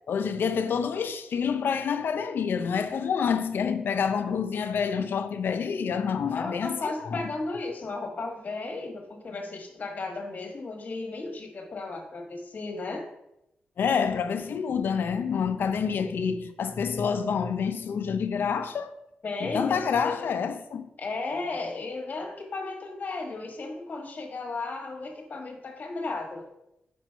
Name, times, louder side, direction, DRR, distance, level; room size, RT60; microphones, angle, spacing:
voice 1, 0.1-7.2 13.8-19.0 19.4-20.9, left 6 dB, 70° left, 0.5 m, -28 dB
voice 2, 6.3-13.1 19.2-20.3 21.0-26.5, left 3 dB, 50° left, 1.4 m, -35 dB
5.1 x 4.5 x 4.5 m
wide cardioid pair, 105°, 4 cm